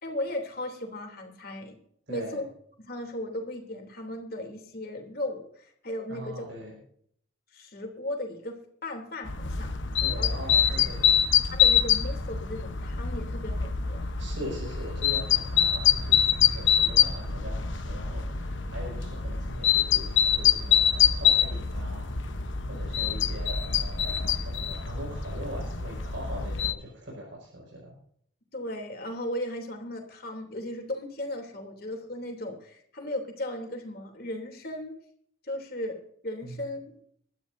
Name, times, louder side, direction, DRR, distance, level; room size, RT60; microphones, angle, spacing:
voice 1, 0.0-1.8 2.1-2.4 2.8-6.5 7.5-8.6 8.8-9.7 10.2-10.3 11.5-14.0 28.5-34.9 35.4-36.0 36.2-36.9, left 1 dB, 50° left, 2 dB, 3.2 m, -36 dB
voice 2, 2.1-2.4 6.1-6.7 10.0-11.2 14.2-24.1 24.4-27.9 36.4-36.7, equal, 80° right, -3 dB, 6.2 m, -41 dB
sound 1, 9.2-26.7, left 8 dB, 80° left, 1.1 m, -25 dB
22.5 x 12.5 x 2.7 m, 0.65 s
head